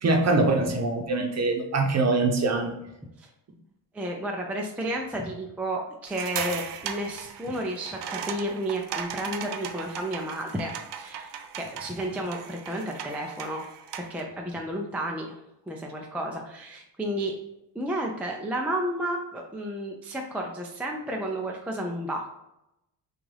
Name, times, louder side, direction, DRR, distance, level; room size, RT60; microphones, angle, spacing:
voice 1, 0.0-2.7, right 2 dB, 35° right, 2 dB, 0.8 m, -23 dB
voice 2, 3.9-13.6 14.0-15.3 15.7-17.4 17.7-22.2, right 1 dB, 5° right, 0 dB, 0.3 m, -32 dB
sound 1, 6.1-14.2, right 7 dB, 70° right, 0.6 m, -37 dB
6.1 x 2.4 x 3.3 m, 0.88 s
cardioid pair, 150°, 44 cm